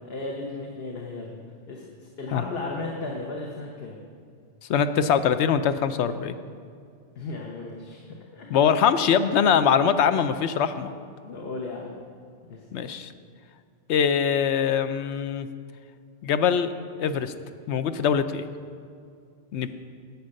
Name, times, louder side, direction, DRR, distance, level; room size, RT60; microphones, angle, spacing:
voice 1, 0.0-1.4 1.7-4.0 7.2-8.0 8.3-8.5 11.2-11.9 12.5-12.6, left 3 dB, 65° left, 0 dB, 1.3 m, -35 dB
voice 2, 4.7-6.3 8.5-10.9 12.7-13.1 13.9-15.5 16.2-16.7 17.0-17.3 17.7-18.5 19.5-19.7, left 7 dB, 90° left, 11 dB, 0.9 m, -22 dB
10.5 x 8.3 x 6.4 m, 2.3 s
omnidirectional pair, 1.1 m